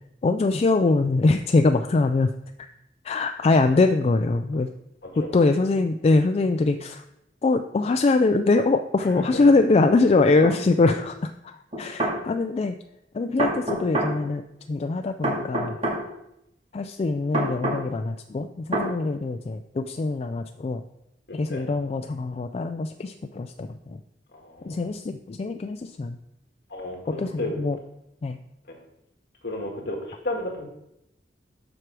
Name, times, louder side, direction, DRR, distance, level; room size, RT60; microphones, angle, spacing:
voice 1, 0.2-2.3 3.0-4.7 5.2-7.0 7.4-12.8 13.1-14.4 14.7-15.8 16.7-20.8 21.3-24.0 24.6-26.2 27.2-27.8 28.2-28.4, left 3 dB, 35° left, 7 dB, 0.3 m, -23 dB
voice 2, 5.0-5.3 9.0-9.4 10.8-11.0 21.3-21.7 24.3-24.8 26.7-27.6 28.7-28.8 29.4-30.6, left 1 dB, 65° left, 1 dB, 1.8 m, -33 dB
sound 1, 10.4-10.6 11.7-12.2 13.4-14.1 15.2-16.0 17.3-17.8 18.7-18.9, right 1 dB, 35° right, 2.1 m, -25 dB
7.8 x 4.7 x 6.1 m, 0.83 s
head